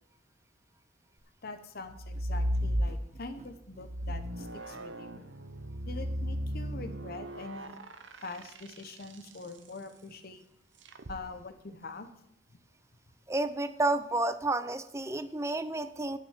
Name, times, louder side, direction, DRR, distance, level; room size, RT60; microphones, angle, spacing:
voice 1, 1.4-5.1 5.9-7.8 8.2-10.4 11.1-12.1, left 3 dB, 55° left, 9 dB, 0.9 m, -44 dB
sound 1, 1.9-3.4 3.8-9.3 10.9-11.2, equal, 85° right, 1.0 m, -35 dB
sound 2, 2.1-4.9, right 1 dB, 40° right, 1.2 m, -54 dB
voice 2, 13.3-16.2, right 2 dB, 15° right, 12 dB, 0.6 m, -30 dB
9.7 x 6.4 x 8.8 m, 0.78 s
head